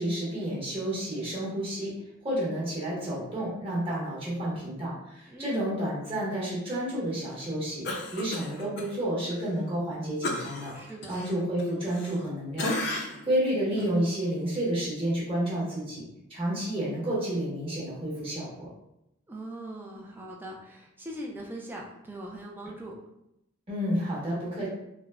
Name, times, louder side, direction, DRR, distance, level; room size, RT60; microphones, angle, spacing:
voice 1, 0.0-1.9 2.2-7.8 8.1-10.7 11.1-16.0 16.3-18.7 23.7-24.7, right 1 dB, 30° right, -7 dB, 1.1 m, -30 dB
voice 2, 5.3-5.7 10.7-11.2 19.3-22.9, right 1 dB, 10° right, -2 dB, 0.3 m, -41 dB
Cough, 7.8-8.9 9.3-9.4 10.2-12.3 12.6-13.3 13.8-13.9, left 2 dB, 55° left, 0.4 m, -34 dB
3.5 x 2.0 x 2.2 m, 0.84 s
head